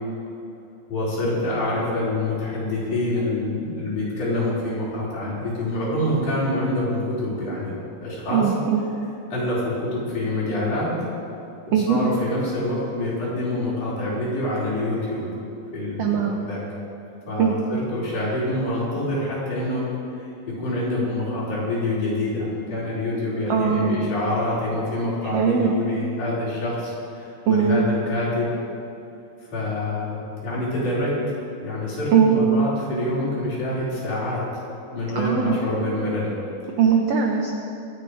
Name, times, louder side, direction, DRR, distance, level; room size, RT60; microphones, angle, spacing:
voice 1, 0.9-7.7 8.0-8.5 9.3-10.9 11.7-15.3 15.7-16.6 17.3-19.9 20.5-28.5 29.5-31.2 31.6-34.6 34.9-36.3, left 1 dB, 60° left, -8 dB, 5.6 m, -26 dB
voice 2, 8.3-8.8 11.7-12.0 16.0-16.4 17.4-17.5 23.5-24.0 25.2-25.7 27.5-27.8 32.1-32.4 35.1-35.6 36.8-37.6, right 7 dB, 80° right, 1 dB, 1.4 m, -20 dB
23.5 x 8.2 x 5.0 m, 2.8 s
omnidirectional pair, 4.2 m